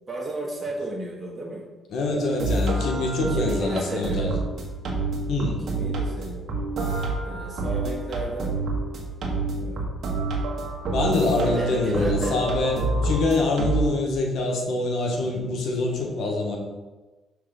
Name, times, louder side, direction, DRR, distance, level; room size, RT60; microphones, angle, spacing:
voice 1, 0.1-1.6 3.3-4.4 5.7-6.6 7.2-8.6 9.6-10.1 11.4-12.4, right 2 dB, 20° right, -5 dB, 1.3 m, -33 dB
voice 2, 1.9-4.4 5.3-5.6 10.9-16.6, left 2 dB, 75° left, 0 dB, 1.3 m, -25 dB
sound 1, 2.1-13.9, right 2 dB, 60° right, 1.3 m, -28 dB
5.8 x 3.3 x 5.2 m, 1.2 s
cardioid pair, 90°, 0 cm